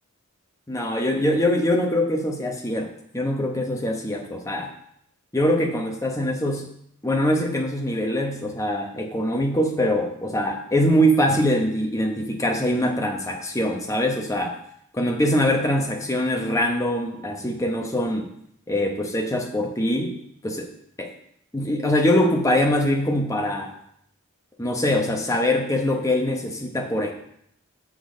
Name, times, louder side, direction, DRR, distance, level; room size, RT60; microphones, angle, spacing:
voice 1, 0.7-4.7 5.3-6.7 7.0-14.6 14.9-18.3 18.7-20.2 20.4-20.7 21.0-21.1 21.5-23.7 24.6-27.1, left 1 dB, 15° left, 2 dB, 0.9 m, -23 dB
6.7 x 6.3 x 5.2 m, 0.72 s
head